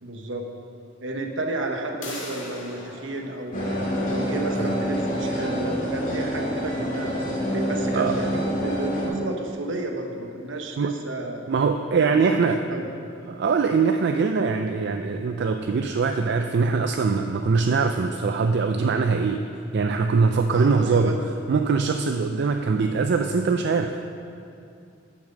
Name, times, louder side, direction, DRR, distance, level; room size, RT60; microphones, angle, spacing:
voice 1, 0.0-0.5 1.0-3.8 4.1-7.1 7.5-11.5 11.9-12.9 20.5-21.2 22.4-22.6, right 2 dB, 80° right, 2 dB, 1.1 m, -32 dB
sound 1, 2.0-7.6, left 2 dB, 85° left, 1.9 m, -43 dB
sound 2, 3.5-9.1, equal, 45° left, 2.5 m, -27 dB
voice 2, 11.5-12.6 13.3-19.5 19.7-21.1 21.5-23.9, right 4 dB, 60° right, 6 dB, 0.4 m, -22 dB
10.5 x 6.1 x 6.5 m, 2.5 s
head